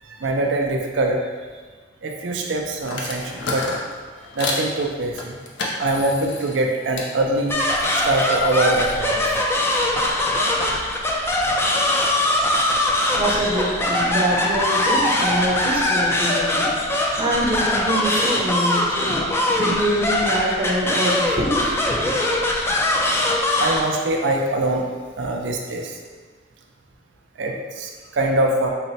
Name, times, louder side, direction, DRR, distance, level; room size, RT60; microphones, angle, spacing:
voice 1, 0.0-1.2 2.0-3.7 4.4-5.4 5.8-7.6 7.9-9.4 23.6-24.9 25.2-25.9 27.4-28.7, right 2 dB, 90° right, 1 dB, 0.4 m, -23 dB
sound 1, 2.8-4.7 5.1-7.1 7.5-10.1, left 3 dB, 80° left, 0.5 m, -32 dB
sound 2, 7.5-23.8, left 1 dB, 15° left, 0.3 m, -21 dB
voice 2, 13.2-16.7 17.2-19.2 19.6-22.1, equal, 30° right, -3 dB, 0.6 m, -24 dB
4.1 x 2.1 x 4.0 m, 1.5 s
head